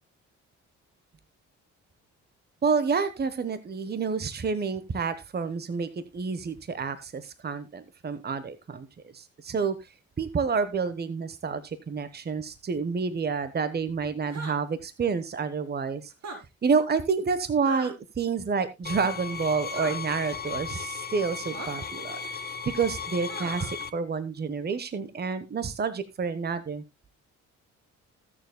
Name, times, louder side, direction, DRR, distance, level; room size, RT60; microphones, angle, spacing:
voice 1, 2.6-8.9 9.1-9.8 10.2-16.1 16.6-22.2 22.7-26.8, right 5 dB, 35° right, 12 dB, 1.1 m, -29 dB
sound 1, 14.3-14.6 16.1-16.4 17.6-17.9 19.7-19.9 21.5-21.7 23.3-23.7, right 3 dB, 55° right, 4.0 m, -38 dB
sound 2, 18.8-23.9, left 5 dB, 30° left, 1.2 m, -36 dB
21.0 x 7.0 x 2.2 m, 0.22 s
cardioid pair, 90°, 30 cm